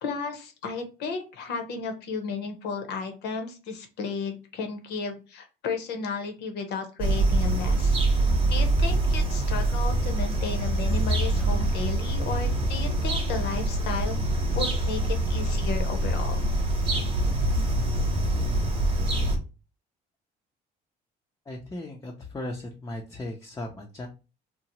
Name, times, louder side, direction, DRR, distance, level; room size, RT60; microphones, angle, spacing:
voice 1, 0.0-8.0 8.5-14.2 14.5-16.4, left 5 dB, 80° left, 5 dB, 0.8 m, -33 dB
sound 1, 7.0-19.4, right 2 dB, 30° right, 0.8 m, -25 dB
voice 2, 21.5-24.1, left 1 dB, 20° left, 1 dB, 0.4 m, -37 dB
2.8 x 2.0 x 2.8 m, 0.31 s
cardioid pair, 110°, 17 cm